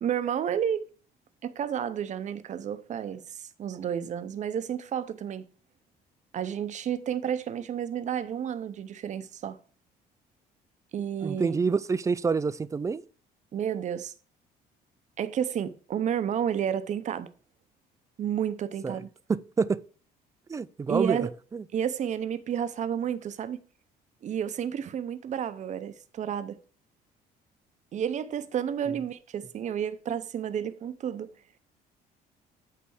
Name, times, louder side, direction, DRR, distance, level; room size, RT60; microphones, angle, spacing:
voice 1, 0.0-0.9 1.4-5.5 6.3-9.6 10.9-11.6 13.5-14.1 15.2-17.3 18.2-19.1 20.9-21.3 21.7-23.6 24.2-26.6 27.9-31.3, right 9 dB, 45° right, 0.7 m, -31 dB
voice 2, 11.2-13.0 18.8-19.0 19.3-19.8 20.5-21.6 28.9-29.0, right 5 dB, 20° right, 0.3 m, -27 dB
8.4 x 3.4 x 6.3 m
cardioid pair, 110°, 17 cm